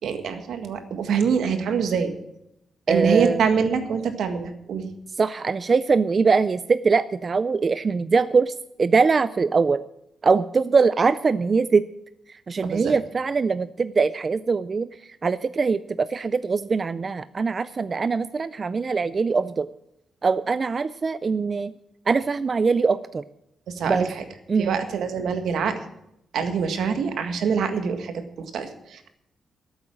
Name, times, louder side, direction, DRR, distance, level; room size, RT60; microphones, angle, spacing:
voice 1, 0.0-2.1 2.9-4.9 12.7-12.9 23.7-24.2 24.6-25.8 26.3-29.1, right 6 dB, 80° right, 7 dB, 1.7 m, -25 dB
voice 2, 2.9-3.4 5.2-8.5 8.8-9.8 10.2-11.8 12.5-14.9 15.2-19.7 20.2-21.7 22.1-23.2 23.9-24.1 24.5-24.7, right 4 dB, 35° right, 14 dB, 0.4 m, -22 dB
13.5 x 8.0 x 7.6 m, 0.82 s
wide cardioid pair, 140°, 0 cm